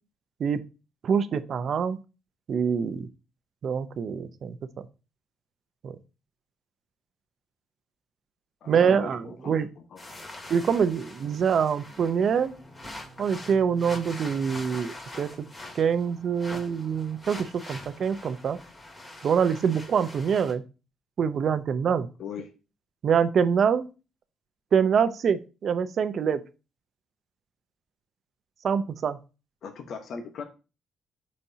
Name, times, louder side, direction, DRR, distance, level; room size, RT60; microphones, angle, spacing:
voice 1, 1.0-2.0 2.5-3.1 3.6-4.8 5.8-6.0 8.7-9.7 10.5-12.5 13.2-15.3 15.7-18.6 19.2-20.6 21.2-22.1 23.0-23.9 24.7-26.4 28.6-29.2, right 7 dB, 55° right, 12 dB, 0.7 m, -25 dB
voice 2, 8.6-10.0 22.2-22.5 29.6-30.4, left 6 dB, 65° left, 4 dB, 1.1 m, -39 dB
sound 1, 10.0-20.5, left 1 dB, 20° left, 2.5 m, -44 dB
12.0 x 4.3 x 2.8 m, 0.31 s
cardioid pair, 90°, 0 cm